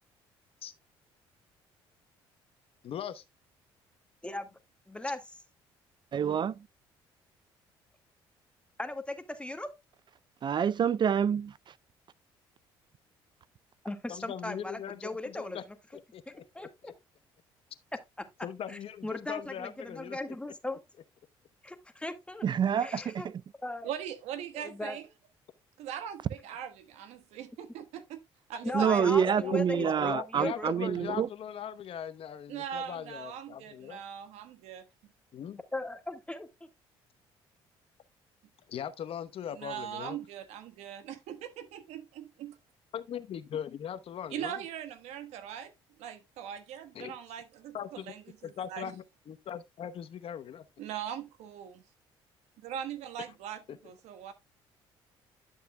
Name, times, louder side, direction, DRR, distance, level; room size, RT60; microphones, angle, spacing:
voice 1, 2.8-3.2 14.1-15.6 15.9-16.4 16.8-16.9 18.4-20.2 29.0-34.0 35.3-35.6 38.7-40.2 42.9-44.6 46.9-47.1 47.7-48.1 48.4-50.7 53.7-53.8, left 9 dB, 55° left, 0.9 m, -40 dB
voice 2, 4.2-4.6 4.9-5.2 8.8-9.7 13.8-15.6 16.3-16.9 18.2-18.3 18.7-20.8 21.6-22.4 22.8-23.3 23.6-23.9 24.6-25.0 28.6-30.7 35.7-36.5, left 2 dB, 10° left, 1.6 m, -38 dB
voice 3, 6.1-6.5 10.4-11.5 22.4-23.1 28.7-31.3, right 8 dB, 40° right, 0.4 m, -27 dB
voice 4, 23.8-25.0 25.8-28.2 28.5-29.3 32.5-34.9 39.5-42.6 44.3-45.7 46.0-48.9 50.8-51.8 52.6-54.3, right 9 dB, 75° right, 1.3 m, -41 dB
11.5 x 6.7 x 2.2 m
supercardioid pair, 65°, 11 cm